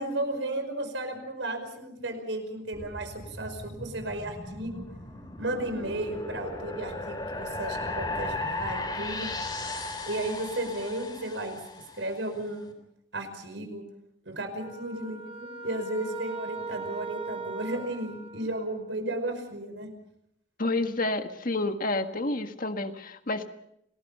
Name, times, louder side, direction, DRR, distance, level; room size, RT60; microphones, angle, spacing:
voice 1, 0.0-4.8 5.4-9.3 10.0-11.6 12.0-12.7 13.1-13.8 14.2-19.9, right 1 dB, 85° right, 7 dB, 5.1 m, -34 dB
sound 1, 2.7-12.1, left 2 dB, 25° left, 3.8 m, -36 dB
sound 2, 14.6-19.0, right 3 dB, 35° right, 3.4 m, -40 dB
voice 2, 20.6-23.5, left 2 dB, 50° left, 7 dB, 1.6 m, -29 dB
29.0 x 19.5 x 5.7 m, 0.77 s
head